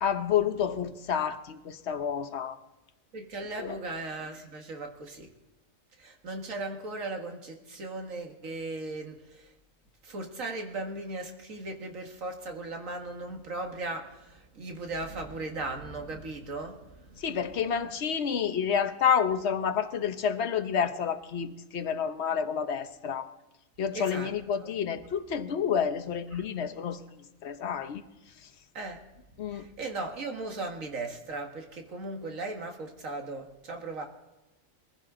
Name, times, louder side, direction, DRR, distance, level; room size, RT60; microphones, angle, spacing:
voice 1, 0.0-2.6 3.6-3.8 17.2-23.3 23.8-28.0 29.4-29.7, left 7 dB, 60° left, 10 dB, 1.1 m, -29 dB
voice 2, 3.1-5.3 6.0-9.5 10.0-17.2 23.9-24.3 24.6-24.7 26.3-26.4 28.7-29.0 29.5-34.1, right 2 dB, 85° right, 4 dB, 2.1 m, -37 dB
21.0 x 15.5 x 3.8 m, 1.0 s
omnidirectional pair, 1.4 m